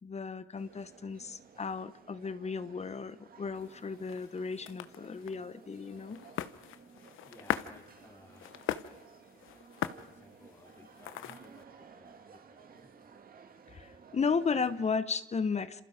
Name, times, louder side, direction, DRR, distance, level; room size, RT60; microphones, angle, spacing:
voice 1, 0.0-6.2 13.7-15.8, left 5 dB, 35° left, 13 dB, 1.2 m, -34 dB
sound 1, 0.6-14.9, right 6 dB, 45° right, 2.1 m, -56 dB
sound 2, 3.6-11.6, left 12 dB, 85° left, 1.0 m, -41 dB
voice 2, 7.3-8.6 9.9-12.9, left 2 dB, 15° left, -2 dB, 2.8 m, -59 dB
27.5 x 27.5 x 5.2 m, 0.94 s
cardioid pair, 90°, 20 cm